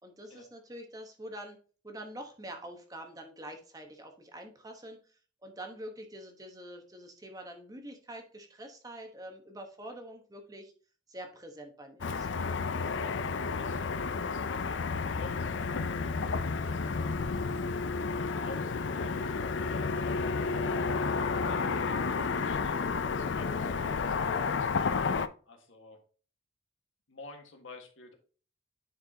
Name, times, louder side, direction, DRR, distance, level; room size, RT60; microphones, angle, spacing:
voice 1, 0.0-10.7 11.1-12.3, right 1 dB, 20° right, 4 dB, 1.1 m, -46 dB
Car passing by / Traffic noise roadway noise, 12.0-25.3, left 4 dB, 70° left, 0.5 m, -31 dB
voice 2, 12.9-17.7 18.3-20.8 21.5-26.0 27.1-28.1, left 3 dB, 85° left, 3 dB, 1.7 m, -51 dB
10.0 x 4.6 x 2.8 m, 0.40 s
head